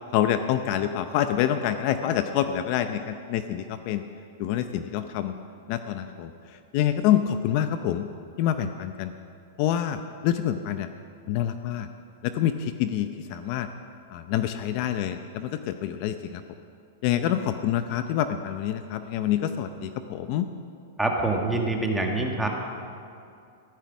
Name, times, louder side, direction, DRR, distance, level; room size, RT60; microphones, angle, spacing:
voice 1, 0.1-4.0 4.4-5.3 5.7-8.1 8.4-9.1 9.6-10.9 11.3-11.9 12.2-13.7 14.1-16.4 17.0-20.5, left 10 dB, 45° left, 9 dB, 0.6 m, -27 dB
voice 2, 21.0-22.5, right 2 dB, 5° right, 1 dB, 1.7 m, -25 dB
15.0 x 12.5 x 6.1 m, 2.5 s
supercardioid pair, 155°, 0 cm